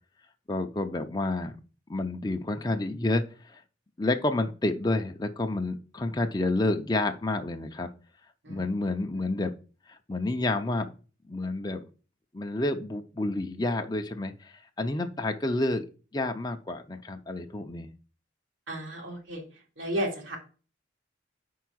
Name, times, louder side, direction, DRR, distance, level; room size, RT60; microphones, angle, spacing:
voice 1, 0.5-1.5 1.9-3.6 4.0-7.9 8.5-9.5 9.9-10.9 11.3-11.8 12.3-15.8 16.1-17.9, left 2 dB, 20° left, 5 dB, 0.5 m, -29 dB
voice 2, 18.7-19.4 19.8-20.4, equal, 90° right, 0 dB, 2.2 m, -33 dB
5.0 x 4.7 x 6.1 m, 0.36 s
head